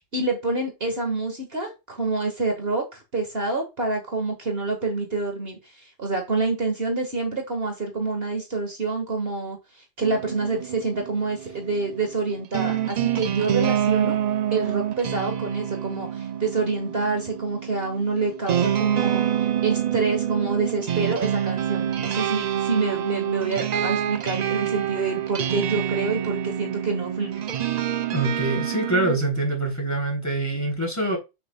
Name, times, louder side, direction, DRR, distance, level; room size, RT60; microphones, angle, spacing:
voice 1, 0.0-14.2 14.5-27.4, right 3 dB, 50° right, 1.9 m, -27 dB
sound 1, 10.0-29.2, right 10 dB, 70° right, 0.4 m, -27 dB
voice 2, 28.1-31.2, right 2 dB, 15° left, 3.2 m, -25 dB
8.7 x 6.9 x 2.3 m
omnidirectional pair, 1.3 m